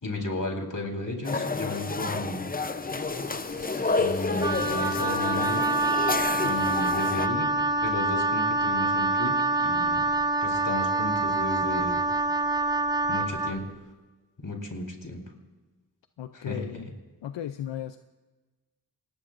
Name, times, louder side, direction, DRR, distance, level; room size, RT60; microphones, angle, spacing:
voice 1, 0.0-2.4 4.0-5.6 6.4-7.5 7.8-9.3 9.6-10.1 10.4-12.0 13.1-13.6 14.4-15.2 16.3-16.9, left 2 dB, 50° left, 1 dB, 3.9 m, -33 dB
sound 1, 1.2-7.3, left 3 dB, 20° left, 0.6 m, -30 dB
sound 2, 2.5-7.7, right 2 dB, 35° right, 6.5 m, -44 dB
Wind instrument woodwind instrument, 4.4-13.6, right 2 dB, 10° right, 0.9 m, -26 dB
voice 2, 6.3-6.7 16.2-16.9 17.2-18.0, left 11 dB, 85° left, 10 dB, 0.6 m, -36 dB
27.0 x 20.0 x 2.5 m, 1.2 s
cardioid pair, 45°, 43 cm